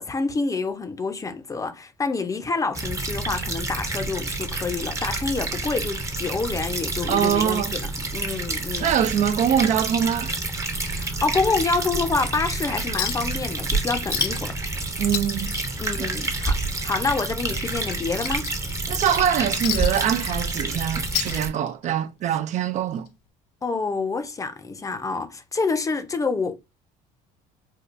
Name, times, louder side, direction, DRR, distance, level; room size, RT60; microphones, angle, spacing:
voice 1, 0.0-8.9 10.9-14.6 15.8-16.6 16.8-18.5 23.6-26.6, left 4 dB, 20° left, 0.6 m, -27 dB
sound 1, 2.7-21.5, right 2 dB, 20° right, 0.7 m, -28 dB
voice 2, 7.1-7.7 8.8-10.3 15.0-15.5 16.0-16.1 18.9-23.1, right 9 dB, 50° right, 0.4 m, -23 dB
Chink clink, 13.0-13.4 13.7-13.8 14.1-14.6 14.9-16.6 16.9-17.1 17.5-19.0 19.6-20.7 21.0-22.0 23.1-23.2, left 12 dB, 85° left, 0.5 m, -31 dB
4.4 x 2.3 x 2.5 m
cardioid pair, 100°, 16 cm